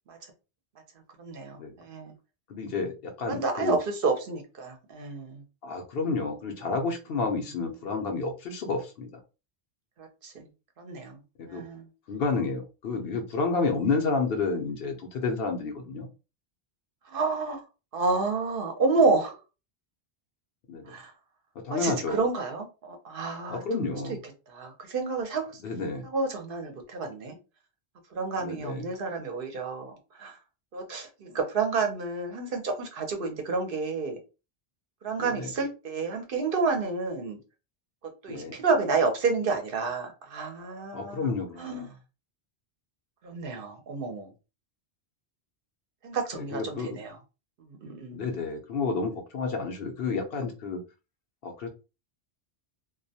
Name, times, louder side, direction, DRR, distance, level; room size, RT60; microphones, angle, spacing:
voice 1, 1.2-2.1 3.3-5.4 7.2-7.3 10.0-10.5 10.8-11.2 11.5-11.9 17.1-17.6 17.9-19.4 20.9-21.1 21.7-23.6 24.5-25.6 26.0-27.4 28.1-30.4 30.7-34.2 35.0-37.4 38.2-41.3 41.6-41.9 43.2-44.3 46.0-47.2 47.7-48.2, right 4 dB, 60° right, 4 dB, 0.7 m, -30 dB
voice 2, 2.5-3.8 5.6-9.2 11.4-11.6 12.1-16.1 20.7-21.0 21.6-22.3 23.5-24.2 25.6-26.0 28.4-28.9 35.2-35.5 38.3-38.5 40.9-41.9 46.3-47.0 48.1-50.8 51.4-51.7, left 4 dB, 70° left, 4 dB, 0.8 m, -30 dB
2.3 x 2.1 x 2.7 m, 0.30 s
omnidirectional pair, 1.1 m